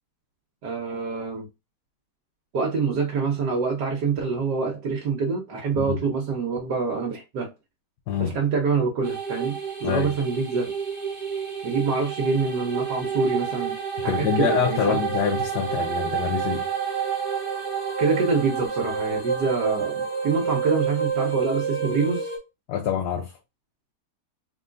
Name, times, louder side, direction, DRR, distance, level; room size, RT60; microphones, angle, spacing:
voice 1, 0.6-1.5 2.5-7.5 8.2-10.7 11.6-15.0 18.0-22.3, right 4 dB, 75° right, 1.5 m, -26 dB
sound 1, 9.0-22.4, right 6 dB, 20° right, 1.2 m, -29 dB
voice 2, 14.1-16.7 22.7-23.4, left 8 dB, 80° left, 1.3 m, -26 dB
3.7 x 3.5 x 2.5 m
omnidirectional pair, 1.8 m